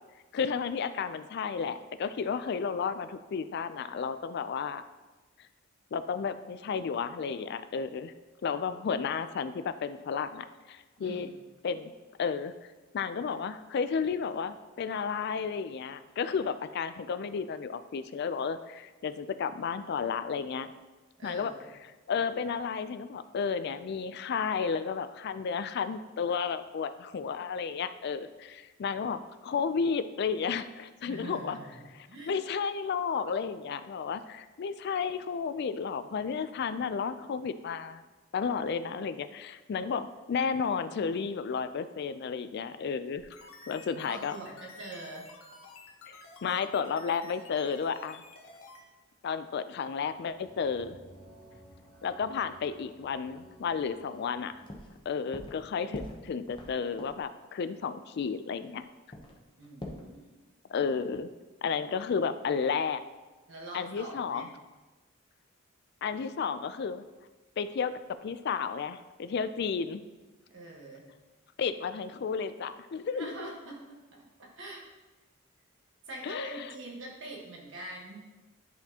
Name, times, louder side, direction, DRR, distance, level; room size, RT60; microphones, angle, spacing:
voice 1, 0.3-4.8 5.9-8.1 8.4-11.3 11.6-11.9 12.2-12.5 12.9-20.7 21.2-21.5 21.8-31.6 32.3-38.0 38.3-43.3 43.7-44.4 46.1-48.2 49.2-51.0 52.0-54.5 55.1-58.9 60.7-61.3 61.6-63.0 63.7-64.5 66.0-67.0 67.6-67.9 68.2-70.0 71.6-73.5 76.2-76.7, left 6 dB, 50° left, 12 dB, 0.3 m, -32 dB
voice 2, 11.0-11.3 21.2-21.7 31.1-32.4 44.0-45.3 59.6-60.2 63.5-64.5 70.5-71.1 73.1-74.9 76.1-78.2, right 2 dB, 60° right, -2 dB, 1.3 m, -44 dB
sound 1, 43.1-48.8, left 3 dB, 85° left, 1.0 m, -52 dB
sound 2, 50.2-54.8, equal, ahead, 1.7 m, -55 dB
sound 3, 54.1-54.2 54.6-55.0 55.3-55.6 55.9-57.3 58.3-58.4 58.6-58.7 59.1-60.0, left 1 dB, 25° left, 0.8 m, -43 dB
10.5 x 4.2 x 2.8 m, 1.2 s
head